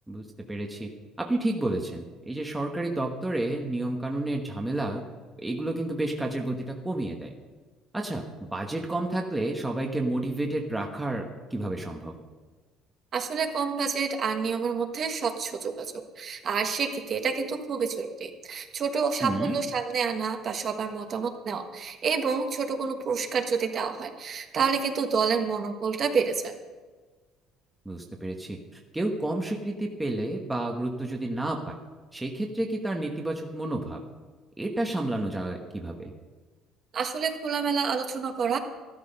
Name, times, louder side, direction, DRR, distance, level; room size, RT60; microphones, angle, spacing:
voice 1, 0.1-0.9 1.2-5.0 5.4-7.3 7.9-8.2 8.5-12.1 19.2-19.6 27.8-28.6 28.9-31.8 32.1-34.0 34.6-36.1, right 1 dB, 10° right, 1 dB, 1.2 m, -30 dB
voice 2, 13.1-26.5 36.9-38.6, right 5 dB, 35° right, 5 dB, 1.4 m, -28 dB
13.5 x 12.5 x 5.4 m, 1.3 s
cardioid pair, 145°, 0 cm